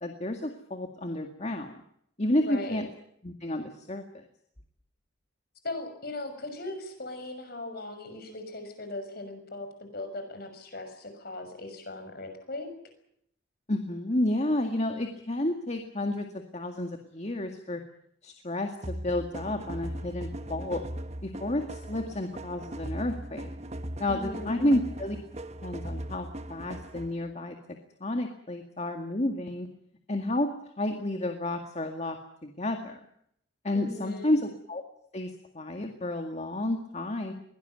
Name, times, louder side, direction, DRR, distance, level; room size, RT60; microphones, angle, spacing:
voice 1, 0.0-1.7 2.2-2.9 3.2-4.2 13.7-17.8 18.2-20.8 21.2-23.5 24.0-25.2 25.6-27.6 28.0-29.7 30.1-30.5 30.8-33.0 33.6-34.8 35.1-37.3, left 1 dB, 35° left, 5 dB, 2.0 m, -31 dB
voice 2, 2.4-2.8 5.6-12.7 24.1-24.6 33.7-34.3, left 2 dB, 50° left, 7 dB, 6.2 m, -39 dB
sound 1, 18.8-27.3, right 1 dB, 35° right, 1.3 m, -39 dB
22.0 x 18.0 x 9.3 m, 0.72 s
head